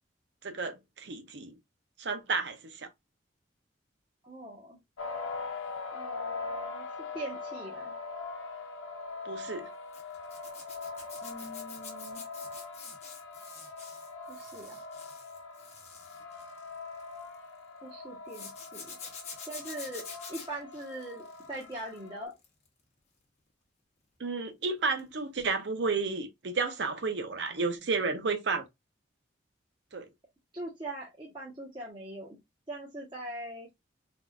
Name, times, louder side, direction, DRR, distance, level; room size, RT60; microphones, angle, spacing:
voice 1, 0.4-1.6 2.0-2.9 9.2-9.7 24.2-28.7 29.9-30.1, right 4 dB, 65° right, 0.6 m, -32 dB
voice 2, 4.2-4.8 5.9-6.8 7.1-7.9 11.2-12.2 14.3-14.8 17.8-19.0 19.5-22.3 30.5-32.4 32.7-33.7, right 1 dB, 25° right, 1.0 m, -42 dB
sound 1, 5.0-22.2, left 4 dB, 90° left, 0.6 m, -42 dB
Zipper (clothing), 9.9-17.4 18.3-22.0 22.3-22.7 25.0-25.1 25.4-25.5, left 5 dB, 35° left, 0.9 m, -47 dB
3.6 x 2.4 x 2.3 m
head